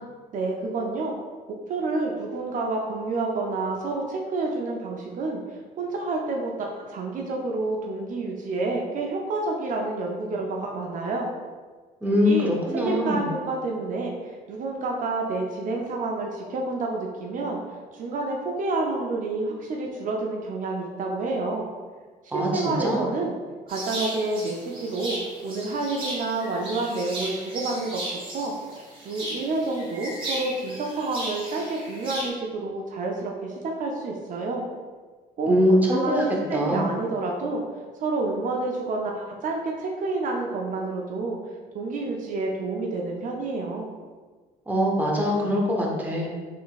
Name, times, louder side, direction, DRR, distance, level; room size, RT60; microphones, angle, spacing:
voice 1, 0.3-1.1 1.7-5.4 5.8-11.3 12.3-12.5 12.8-17.6 17.9-21.7 22.2-23.4 23.7-25.2 25.4-28.0 28.3-28.5 29.0-34.6 35.4-35.5 35.9-37.6 38.0-41.4 41.7-43.9, right 3 dB, 50° right, 0 dB, 0.5 m, -29 dB
voice 2, 12.0-13.3 22.3-23.0 35.4-36.3 36.5-36.8 44.7-46.3, equal, 10° right, -2 dB, 0.8 m, -23 dB
sound 1, 23.7-32.3, right 1 dB, 30° right, 1.2 m, -36 dB
3.7 x 3.5 x 2.4 m, 1.5 s
cardioid pair, 110°, 17 cm